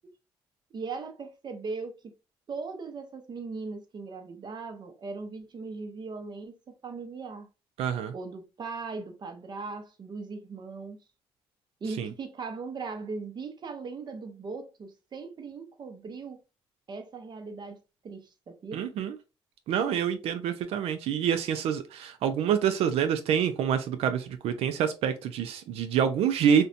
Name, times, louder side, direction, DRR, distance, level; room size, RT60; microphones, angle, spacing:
voice 1, 0.7-2.1 2.5-7.5 8.1-11.0 11.8-16.4 16.9-17.8 18.0-18.8, right 4 dB, 45° right, 0.7 m, -39 dB
voice 2, 7.8-8.1 12.0-12.1 18.7-19.2 19.7-26.7, right 8 dB, 80° right, 0.4 m, -27 dB
2.6 x 2.1 x 2.4 m
cardioid pair, 80°, 10 cm